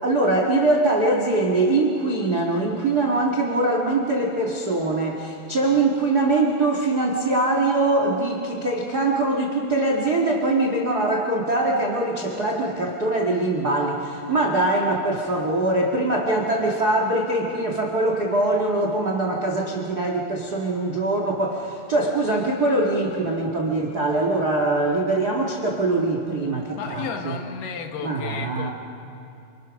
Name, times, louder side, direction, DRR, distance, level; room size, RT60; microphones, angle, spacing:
voice 1, 0.0-27.4 28.0-28.7, right 2 dB, 45° right, 1 dB, 1.2 m, -22 dB
voice 2, 26.7-28.7, left 6 dB, 75° left, 5 dB, 3.4 m, -33 dB
29.5 x 26.5 x 6.2 m, 2.6 s
omnidirectional pair, 4.6 m